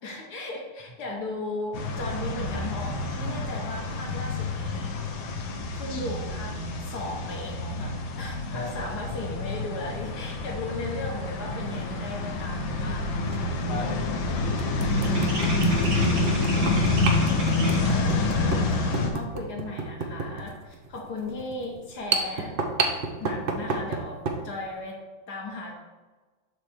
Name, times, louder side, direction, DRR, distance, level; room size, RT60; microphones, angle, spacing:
voice 1, 0.0-5.0 5.7-13.1 17.8-22.5 23.2-24.2 24.4-25.0 25.3-25.7, left 2 dB, 60° left, 0 dB, 1.8 m, -36 dB
sound 1, 1.7-19.1, left 2 dB, 85° left, 1.6 m, -27 dB
voice 2, 8.5-8.9 13.7-15.3, left 1 dB, 30° left, 1 dB, 0.6 m, -37 dB
sound 2, 11.6-11.8 13.3-13.4 13.9-14.0 14.6-24.4, right 4 dB, 70° right, 0.5 m, -31 dB
sound 3, 13.0-13.2 13.5-18.1, right 2 dB, 85° right, 2.4 m, -36 dB
7.6 x 3.4 x 6.2 m, 1.3 s
omnidirectional pair, 2.1 m